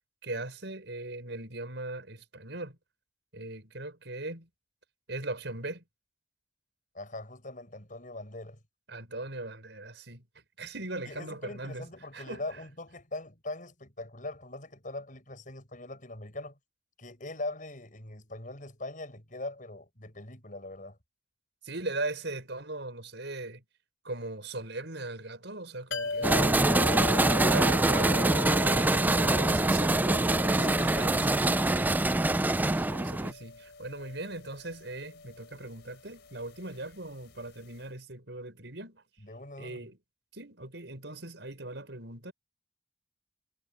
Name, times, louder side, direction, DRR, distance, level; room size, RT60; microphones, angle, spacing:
voice 1, 0.2-2.8 3.3-4.5 5.1-5.8 8.9-10.2 10.6-11.9 12.1-12.4 21.6-23.6 24.0-26.7 27.1-30.3 30.5-31.6 32.5-39.0 39.6-40.0 40.3-42.3, right 2 dB, 75° right, 5.2 m, -39 dB
voice 2, 6.9-8.6 11.1-16.6 17.0-21.0 26.0-26.5 39.2-39.8, left 2 dB, 45° left, 6.5 m, -42 dB
sound 1, 25.9-37.5 37.8-37.9, left 3 dB, 70° left, 4.6 m, -39 dB
sound 2, 26.2-33.3, right 2 dB, 10° right, 0.3 m, -24 dB
head